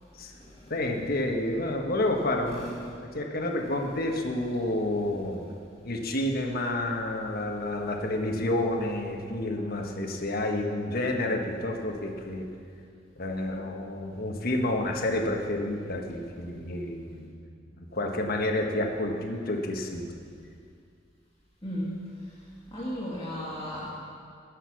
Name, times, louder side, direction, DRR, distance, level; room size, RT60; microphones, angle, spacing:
voice 1, 0.7-5.5 5.8-12.4 13.2-17.3 17.7-20.2, left 1 dB, 55° left, 2 dB, 1.3 m, -29 dB
voice 2, 21.6-22.0 22.7-23.9, equal, 25° left, -9 dB, 2.0 m, -34 dB
16.5 x 6.5 x 6.2 m, 2.3 s
head